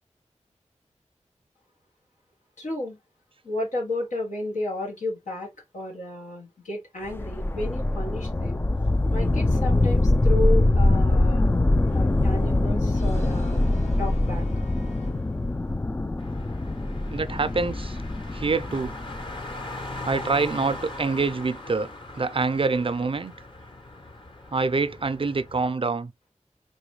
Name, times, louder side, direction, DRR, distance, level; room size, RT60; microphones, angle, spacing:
voice 1, 2.6-3.0 3.4-8.6 9.1-11.4 11.9-13.6 14.0-14.5, left 2 dB, 85° left, 1.7 m, -32 dB
sound 1, 7.1-20.2, left 2 dB, 20° left, 0.3 m, -23 dB
Brass instrument, 11.9-15.7, left 3 dB, 65° left, 1.6 m, -48 dB
Car, 16.2-25.7, left 2 dB, 40° left, 1.1 m, -40 dB
voice 2, 17.1-18.0 18.3-18.9 20.0-21.9 22.1-23.3 24.5-26.1, right 4 dB, 45° right, 0.5 m, -25 dB
3.9 x 2.2 x 3.2 m
cardioid pair, 40°, 12 cm